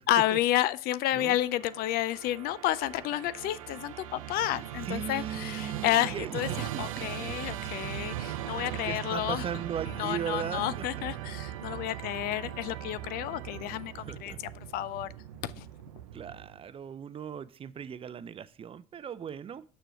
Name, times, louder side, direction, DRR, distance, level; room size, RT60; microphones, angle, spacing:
voice 1, 0.1-9.4 10.0-14.3 14.7-15.1 15.4-15.7, left 14 dB, 65° left, 0.4 m, -30 dB
Musical instrument, 1.4-16.7, right 12 dB, 85° right, 0.5 m, -39 dB
voice 2, 4.8-7.3 8.3-10.9 11.7-12.0 14.0-14.4 16.1-19.6, right 8 dB, 35° right, 0.5 m, -38 dB
6.7 x 4.5 x 4.9 m
hypercardioid pair, 65°, 17 cm